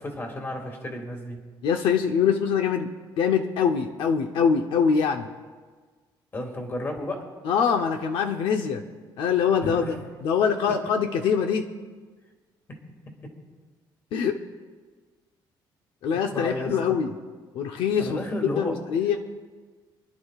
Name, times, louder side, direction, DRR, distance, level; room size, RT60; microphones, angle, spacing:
voice 1, 0.0-1.4 6.3-7.3 9.6-10.0 16.3-17.0 18.0-18.8, left 1 dB, 25° left, 2 dB, 2.1 m, -32 dB
voice 2, 1.6-2.9 3.2-5.3 7.4-8.8 9.2-9.9 10.2-11.7 14.1-14.4 16.0-17.1 17.5-18.2 18.6-19.2, left 7 dB, 85° left, 5 dB, 0.9 m, -23 dB
27.5 x 11.0 x 2.4 m, 1.4 s
cardioid pair, 145°, 9 cm